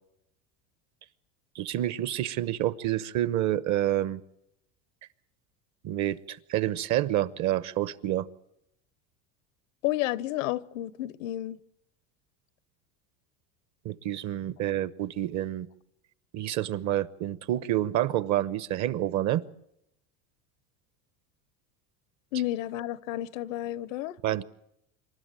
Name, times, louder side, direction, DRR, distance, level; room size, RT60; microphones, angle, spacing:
voice 1, 1.5-4.2 5.8-8.3 13.8-15.7 16.3-19.4 24.2-24.4, right 13 dB, 50° right, 0.9 m, -28 dB
voice 2, 9.8-11.6 22.3-24.2, left 14 dB, 90° left, 0.9 m, -31 dB
27.0 x 12.5 x 9.0 m
supercardioid pair, 115°, 38 cm